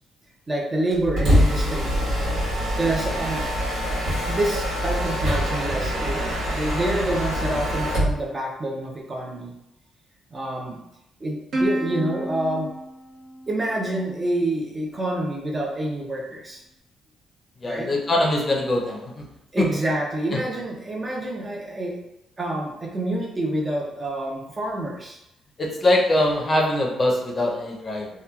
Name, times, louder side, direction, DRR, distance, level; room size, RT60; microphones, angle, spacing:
voice 1, 0.5-1.9 2.8-3.5 4.3-9.5 10.3-10.8 11.2-12.7 13.5-16.6 17.6-17.9 19.5-22.0 22.4-25.2, right 1 dB, 30° right, -1 dB, 0.6 m, -27 dB
Mechanisms, 0.9-8.2, equal, 90° right, 1.2 m, -24 dB
Plucked string instrument, 11.5-14.3, right 1 dB, 70° right, 0.7 m, -30 dB
voice 2, 17.6-19.2 19.6-19.7 25.6-28.1, left 1 dB, 35° left, -1 dB, 0.6 m, -22 dB
2.9 x 2.2 x 2.3 m, 0.86 s
cardioid pair, 90°, 0 cm